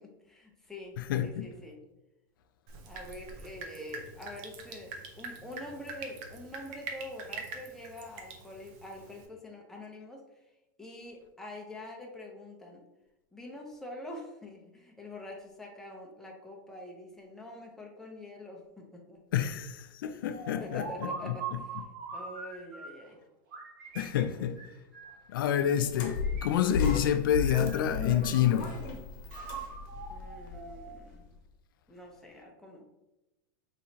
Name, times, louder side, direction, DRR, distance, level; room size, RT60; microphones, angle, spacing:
voice 1, 0.0-1.8 2.9-10.2 10.8-12.9 13.3-19.2 20.6-21.8 22.1-23.2 30.1-31.2 31.9-32.9, left 1 dB, 5° left, 0.7 m, -45 dB
voice 2, 1.0-1.4 19.3-21.3 23.9-24.6 25.3-28.7, left 9 dB, 85° left, 0.4 m, -28 dB
Drip, 2.7-9.3, right 4 dB, 55° right, 0.7 m, -44 dB
sound 1, 20.3-23.1 23.5-25.3 26.0-27.1 27.4-28.8 29.3-31.1, right 5 dB, 70° right, 1.2 m, -43 dB
sound 2, 25.9-31.1, left 5 dB, 50° left, 1.0 m, -35 dB
4.7 x 3.0 x 2.8 m
supercardioid pair, 135°, 11 cm